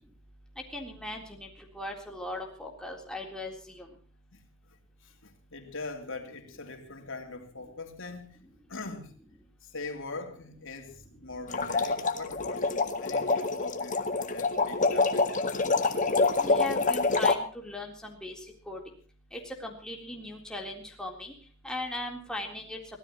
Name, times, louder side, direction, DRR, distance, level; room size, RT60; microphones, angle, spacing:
voice 1, 0.7-1.5 1.7-3.9 16.4-18.4 18.7-18.8 19.3-21.3 21.6-22.8, left 1 dB, 5° left, 0 dB, 3.7 m, -38 dB
voice 2, 4.7-8.4 8.7-9.1 9.6-15.6, left 3 dB, 65° left, 4 dB, 3.2 m, -42 dB
sound 1, 11.5-17.3, left 3 dB, 40° left, 1.6 m, -26 dB
24.0 x 16.5 x 3.1 m, 0.40 s
head